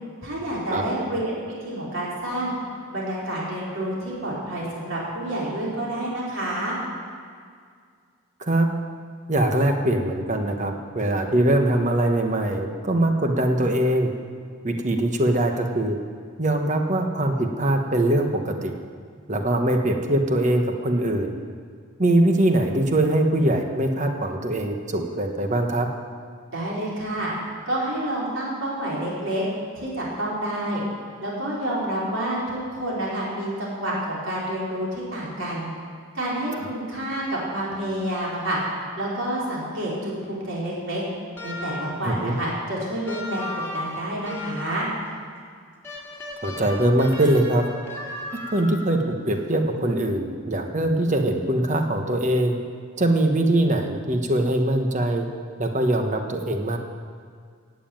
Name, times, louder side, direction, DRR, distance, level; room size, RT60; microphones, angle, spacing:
voice 1, 0.2-1.3 1.6-2.5 2.9-6.8 26.5-27.3 27.6-29.4 29.7-30.8 31.2-35.7 36.1-38.6 39.0-41.0 41.4-43.5 43.7-44.9, right 1 dB, 60° right, -6 dB, 4.2 m, -28 dB
voice 2, 9.3-14.1 14.6-16.0 16.4-18.7 19.3-21.3 22.0-25.9 42.0-42.3 46.4-47.7 48.5-52.6 53.0-55.3 55.6-56.8, right 1 dB, 35° right, 4 dB, 1.3 m, -22 dB
sound 1, 41.4-42.1 43.0-44.9 45.8-49.0, left 1 dB, 10° left, 2.2 m, -36 dB
16.5 x 7.5 x 9.1 m, 2.1 s
head